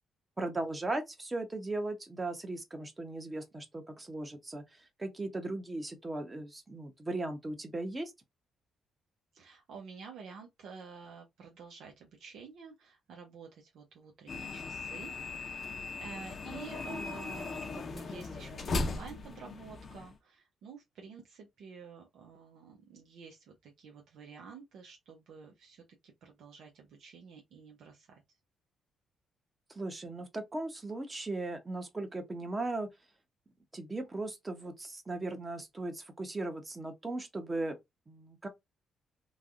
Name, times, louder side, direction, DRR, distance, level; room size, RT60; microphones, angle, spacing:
voice 1, 0.4-8.1 29.7-32.9 33.7-37.8 38.1-38.5, right 2 dB, 20° right, 0.9 m, -37 dB
voice 2, 9.3-15.2 15.6-28.2, right 5 dB, 75° right, 0.8 m, -50 dB
sound 1, 14.3-20.1, left 3 dB, 45° left, 0.6 m, -38 dB
3.2 x 2.3 x 2.5 m
cardioid pair, 90°, 0 cm